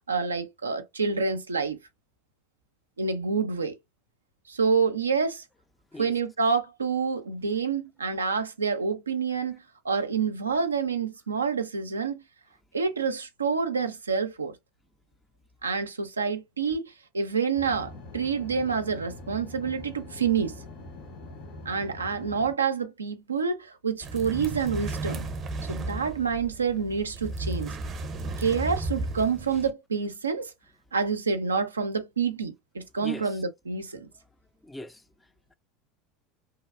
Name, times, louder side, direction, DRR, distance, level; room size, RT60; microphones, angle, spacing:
voice 1, 0.1-1.8 3.0-3.7 4.5-5.4 6.0-12.2 12.7-14.5 15.6-20.6 21.7-25.3 25.6-27.8 28.4-30.5 30.9-34.1, right 5 dB, 85° right, 0.4 m, -28 dB
sound 1, 17.5-22.5, left 2 dB, 65° left, 1.3 m, -43 dB
sound 2, 24.0-29.7, right 2 dB, 40° right, 0.6 m, -34 dB
voice 2, 33.0-33.4 34.6-35.5, left 1 dB, 10° left, 0.3 m, -41 dB
2.8 x 2.2 x 2.3 m
figure-of-eight pair, 75°, 0 cm